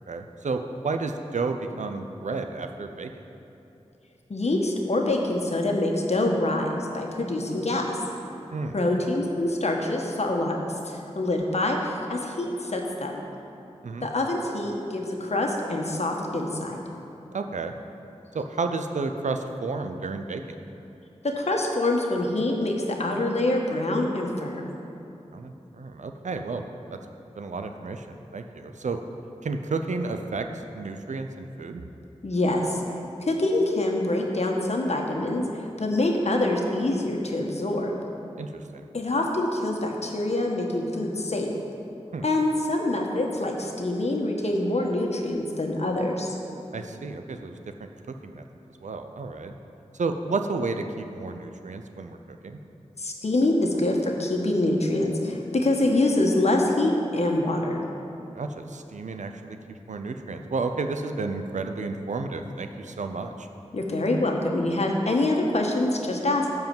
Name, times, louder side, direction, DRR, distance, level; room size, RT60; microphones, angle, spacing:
voice 1, 0.1-3.1 8.5-8.8 13.8-14.1 17.3-17.7 18.3-20.6 25.3-27.0 27.4-29.0 29.4-30.4 30.7-31.8 38.4-38.9 42.1-42.2 46.7-47.6 48.2-48.4 48.8-49.5 49.9-52.6 58.3-63.5, right 3 dB, 85° right, 6 dB, 0.7 m, -32 dB
voice 2, 4.3-8.0 8.7-10.6 10.8-13.2 14.0-16.7 21.4-24.7 32.2-32.8 33.2-37.9 38.9-41.5 42.2-46.4 53.0-57.8 63.7-66.5, left 2 dB, 65° left, 1 dB, 1.5 m, -25 dB
13.0 x 4.8 x 7.8 m, 2.8 s
wide cardioid pair, 50°, 12 cm